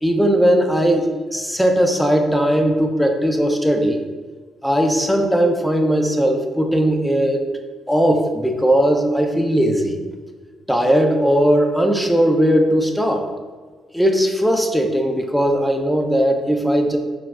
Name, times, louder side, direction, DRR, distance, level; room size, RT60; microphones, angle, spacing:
voice 1, 0.0-4.0 4.6-7.5 7.9-10.0 10.7-13.2 13.9-17.0, equal, ahead, 4 dB, 0.5 m, -18 dB
4.7 x 3.5 x 2.3 m, 1.5 s
cardioid pair, 90°, 0 cm